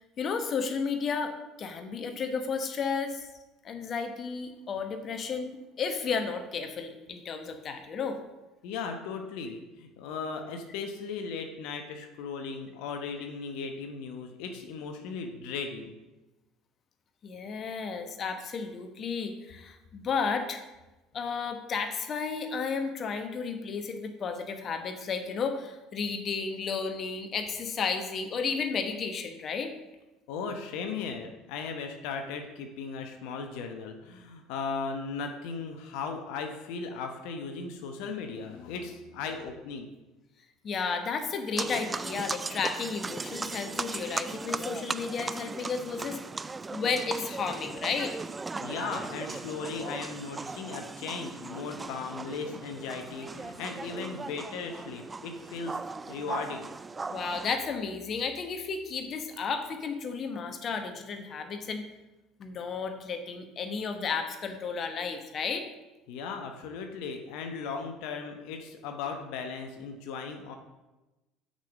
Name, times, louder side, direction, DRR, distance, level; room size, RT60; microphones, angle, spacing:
voice 1, 0.2-3.3 3.6-8.2 17.2-20.6 21.1-29.7 40.6-46.2 46.7-48.1 57.1-61.8 62.4-65.7, left 5 dB, 45° left, 7 dB, 1.1 m, -33 dB
voice 2, 8.6-15.9 30.3-39.9 48.6-55.8 56.1-56.7 66.1-70.5, left 5 dB, 70° left, 5 dB, 0.9 m, -37 dB
sound 1, 41.6-57.6, right 3 dB, 25° right, 0.3 m, -38 dB
6.4 x 5.5 x 6.4 m, 1.0 s
hypercardioid pair, 65°, 0 cm